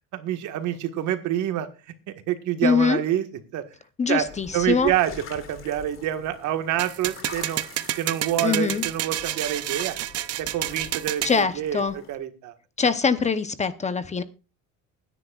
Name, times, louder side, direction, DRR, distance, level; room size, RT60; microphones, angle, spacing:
voice 1, 0.1-1.7 2.1-3.3 3.5-3.6 4.1-4.3 4.5-7.6 8.0-10.0 10.4-11.8 12.1-12.5, right 11 dB, 65° right, 7 dB, 1.7 m, -27 dB
voice 2, 2.6-3.0 4.0-4.9 8.4-8.8 11.2-11.9 12.8-14.2, left 5 dB, 20° left, 11 dB, 0.8 m, -23 dB
sound 1, 4.2-12.2, left 6 dB, 40° left, 2.6 m, -45 dB
sound 2, 6.8-11.4, right 13 dB, 50° right, 0.7 m, -30 dB
23.0 x 10.0 x 2.4 m, 0.31 s
cardioid pair, 135°, 32 cm